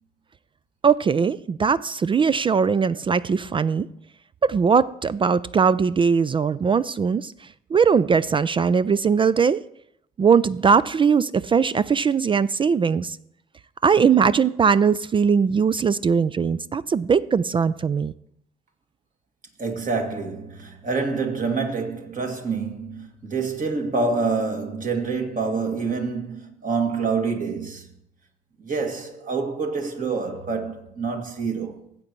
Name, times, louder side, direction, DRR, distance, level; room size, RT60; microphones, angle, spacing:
voice 1, 0.8-3.9 4.4-7.3 7.7-9.6 10.2-13.2 13.8-18.1, right 6 dB, 25° right, 0.3 m, -20 dB
voice 2, 19.6-27.9 28.6-31.8, right 4 dB, 40° right, 2.0 m, -27 dB
16.5 x 8.1 x 3.0 m
hypercardioid pair, 50°, 21 cm